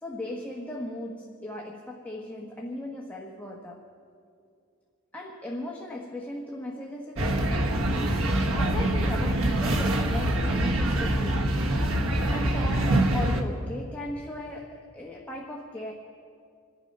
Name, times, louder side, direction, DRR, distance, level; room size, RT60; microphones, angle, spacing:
voice 1, 0.0-3.9 5.1-7.6 8.5-11.7 12.3-15.9, left 1 dB, 10° left, -2 dB, 1.2 m, -37 dB
sound 1, 7.2-13.4, right 1 dB, 75° right, 1.4 m, -25 dB
27.0 x 9.8 x 5.4 m, 2.3 s
head